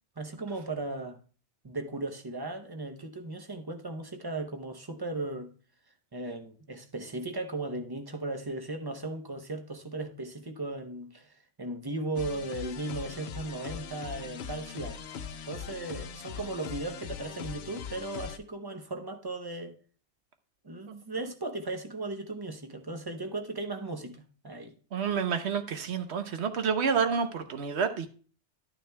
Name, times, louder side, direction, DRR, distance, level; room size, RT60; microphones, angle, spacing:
voice 1, 0.2-1.2 1.6-5.5 6.1-15.0 15.4-19.8 20.6-24.7, right 2 dB, 25° right, 0.6 m, -37 dB
sound 1, 12.2-18.4, left 7 dB, 65° left, 0.8 m, -41 dB
voice 2, 24.9-28.1, right 6 dB, 70° right, 1.1 m, -29 dB
11.5 x 9.4 x 2.2 m
omnidirectional pair, 1.2 m